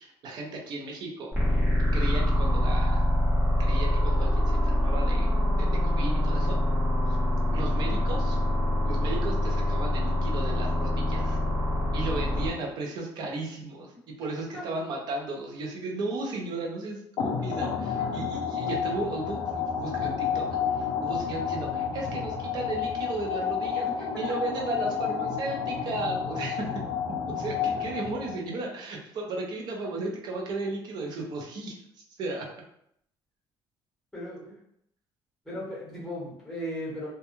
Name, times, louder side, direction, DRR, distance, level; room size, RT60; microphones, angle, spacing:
voice 1, 0.0-1.3 1.9-3.1 3.6-5.3 5.6-6.6 7.1-7.2 7.5-8.4 8.9-11.4 11.9-20.5 20.7-23.9 24.2-26.7 27.3-31.8 32.2-32.5, right 2 dB, 50° right, 0 dB, 0.6 m, -35 dB
sound 1, 1.3-12.5, left 1 dB, 20° right, 0.8 m, -25 dB
sound 2, 17.2-28.5, left 7 dB, 55° left, 0.4 m, -30 dB
voice 2, 18.2-18.7 23.8-24.1 34.1-34.6 35.4-37.1, equal, 5° left, -6 dB, 1.1 m, -37 dB
2.2 x 2.2 x 2.9 m, 0.73 s
cardioid pair, 165°, 9 cm